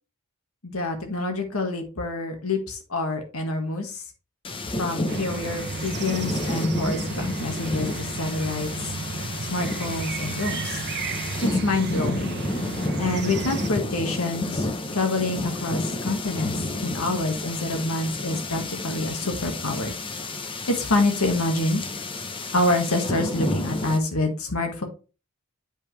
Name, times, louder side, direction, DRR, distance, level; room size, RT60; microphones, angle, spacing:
voice 1, 0.6-4.0 4.8-8.7 9.5-10.8 11.6-12.4 13.0-16.6 16.8-19.9 20.7-21.8 22.5-24.8, left 2 dB, 80° left, 4 dB, 1.6 m, -27 dB
sound 1, 4.4-24.0, left 2 dB, 25° left, 0.7 m, -31 dB
sound 2, 5.1-13.7, right 4 dB, 50° right, 0.8 m, -33 dB
8.7 x 5.2 x 3.2 m, 0.32 s
head